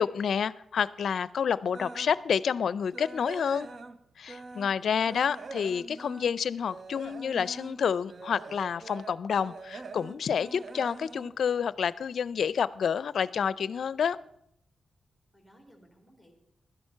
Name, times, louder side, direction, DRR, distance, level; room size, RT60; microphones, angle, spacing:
voice 1, 0.0-3.7 4.2-14.2, left 7 dB, 70° left, 19 dB, 0.4 m, -29 dB
sound 1, 1.7-2.2 2.6-4.8 5.1-12.3 12.6-12.9 13.4-13.5 13.9-14.0, right 3 dB, 50° right, 0.7 m, -44 dB
voice 2, 4.5-5.3 15.3-16.3, equal, 10° right, 0 dB, 3.3 m, -59 dB
13.0 x 10.5 x 5.6 m, 0.74 s
cardioid pair, 80°, 0 cm